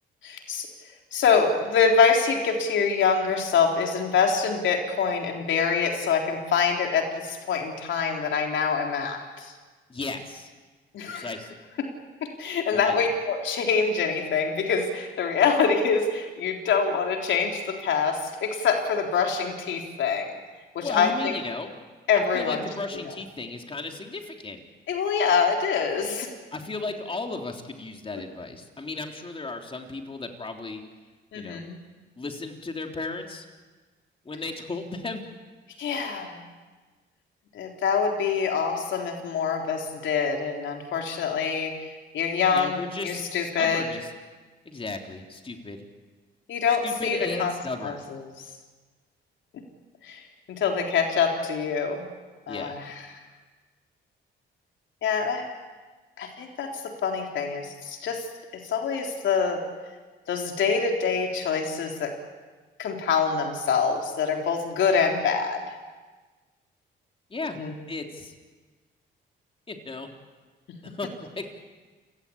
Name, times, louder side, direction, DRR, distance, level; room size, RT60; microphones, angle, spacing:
voice 1, 0.2-0.7 1.1-9.5 10.9-11.3 11.8-11.9 12.2-20.3 20.7-21.3 22.1-22.6 24.9-26.4 31.3-31.8 35.8-36.4 37.5-41.7 42.1-43.9 46.5-47.5 47.8-48.2 50.0-50.2 50.6-52.1 52.5-53.0 55.0-55.5 56.2-56.7 57.0-58.2 58.6-59.6 60.3-62.1 62.8-65.6 67.6-67.7, left 6 dB, 75° left, 2 dB, 3.9 m, -25 dB
voice 2, 9.9-10.5 11.1-11.5 12.7-13.0 20.8-21.7 22.1-24.6 26.5-30.8 31.3-31.6 32.2-33.5 34.3-35.2 42.5-44.1 44.7-45.9 46.8-48.0 52.5-52.8 67.3-67.6 67.9-68.3 69.7-70.1 70.8-71.5, left 3 dB, 25° left, 3 dB, 3.6 m, -35 dB
29.0 x 18.0 x 8.8 m, 1.4 s
cardioid pair, 90°, 20 cm